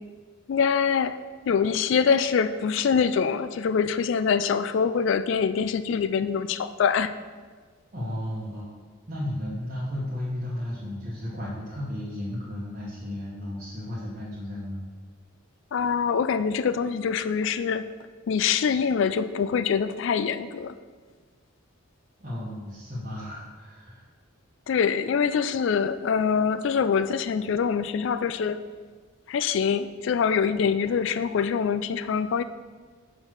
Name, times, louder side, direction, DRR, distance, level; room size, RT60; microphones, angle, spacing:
voice 1, 0.5-1.2 1.5-7.1 15.7-17.9 18.3-20.8 24.7-28.6 29.3-32.4, left 6 dB, 60° left, 12 dB, 0.3 m, -24 dB
voice 2, 7.9-8.7 9.1-14.8 22.2-24.0, left 1 dB, 40° right, -7 dB, 1.0 m, -34 dB
5.2 x 4.5 x 6.0 m, 1.5 s
head